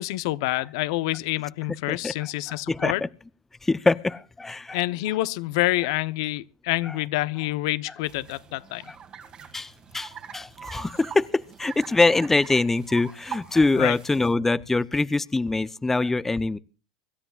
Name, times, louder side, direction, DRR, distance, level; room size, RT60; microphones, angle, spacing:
voice 1, 0.0-3.0 4.7-8.8 13.8-14.0, left 18 dB, 70° left, 0.9 m, -27 dB
voice 2, 2.5-3.1 3.6-4.8 6.9-7.0 8.9-9.0 9.5-16.6, left 3 dB, 10° left, 0.6 m, -24 dB
sound 1, 8.0-14.3, right 7 dB, 35° right, 2.4 m, -43 dB
25.0 x 13.0 x 2.4 m
hypercardioid pair, 100°, 3 cm